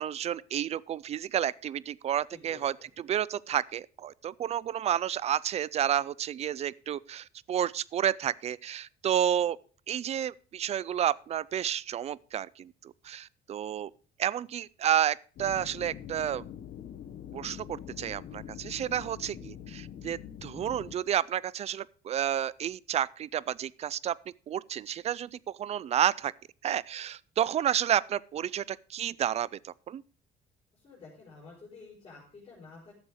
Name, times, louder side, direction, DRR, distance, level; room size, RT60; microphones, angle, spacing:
voice 1, 0.0-9.6 9.9-13.9 14.2-16.4 17.3-24.2 24.5-26.3 26.6-30.0, right 10 dB, 40° right, 0.4 m, -31 dB
voice 2, 2.3-2.7 30.7-32.9, left 4 dB, 35° left, 4.6 m, -50 dB
sound 1, 15.4-21.0, left 10 dB, 60° left, 1.1 m, -44 dB
12.0 x 7.2 x 4.7 m
cardioid pair, 110°, 17 cm